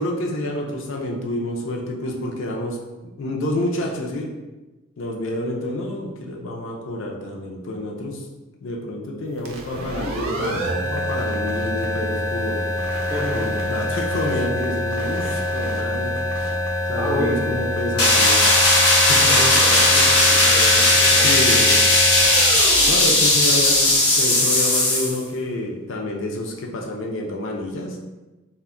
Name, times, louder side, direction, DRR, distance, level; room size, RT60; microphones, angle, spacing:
voice 1, 0.0-2.8 3.2-4.3 5.0-8.3 8.6-12.7 13.3-16.2 16.9-18.4 18.9-19.3 21.1-21.6 22.9-28.0, left 1 dB, 60° left, 0 dB, 0.4 m, -28 dB
sound 1, 9.4-24.0, left 1 dB, 70° right, 0.5 m, -26 dB
voice 2, 12.9-13.5 17.0-17.5 19.1-21.8, equal, 15° right, -5 dB, 0.5 m, -29 dB
sound 2, 18.0-25.2, left 2 dB, 85° left, 0.8 m, -16 dB
2.2 x 2.1 x 3.5 m, 1.1 s
head